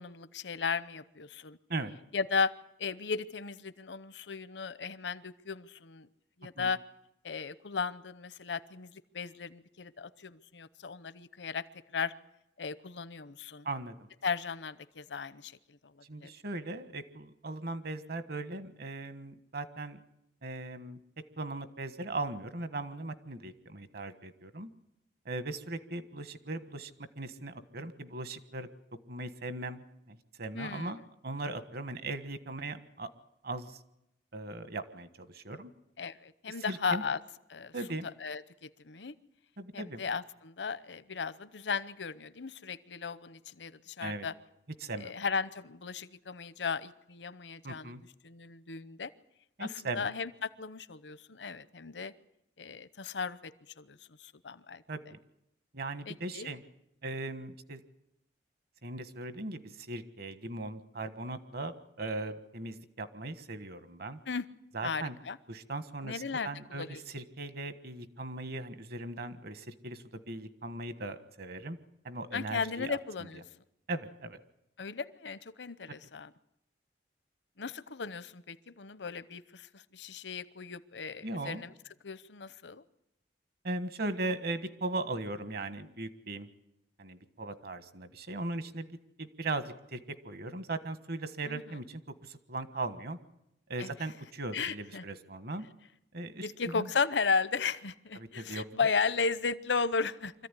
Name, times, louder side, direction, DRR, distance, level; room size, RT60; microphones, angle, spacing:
voice 1, 0.0-1.6 2.1-2.5 2.8-6.1 6.4-6.8 7.2-11.6 11.9-12.1 12.6-13.7 14.2-16.3 30.5-30.9 36.0-37.2 37.5-37.7 38.2-39.1 39.7-44.3 45.0-47.9 48.2-49.1 49.6-49.7 49.9-52.1 52.6-53.5 53.8-54.8 56.1-56.5 64.3-64.5 64.8-65.4 66.0-67.0 72.3-73.4 74.8-76.3 77.6-81.7 82.0-82.8 91.5-91.6 93.8-93.9 94.5-95.0 96.4-100.5, left 5 dB, 80° left, 16 dB, 0.9 m, -35 dB
voice 2, 16.1-20.0 20.4-21.0 21.4-24.7 25.2-28.7 29.1-33.1 33.4-33.8 34.3-35.7 36.5-37.0 37.7-38.1 39.6-40.0 44.0-44.3 44.8-45.1 47.6-48.0 49.6-50.1 54.9-55.2 55.7-56.6 57.0-57.8 58.8-64.2 64.7-65.2 65.5-71.8 72.0-73.0 73.9-74.4 81.2-81.6 83.6-86.5 87.0-88.9 89.2-93.2 93.7-95.7 96.1-96.5 96.7-96.9 98.1-98.6, right 2 dB, 60° right, 11 dB, 1.4 m, -38 dB
25.0 x 14.5 x 9.9 m, 0.83 s
head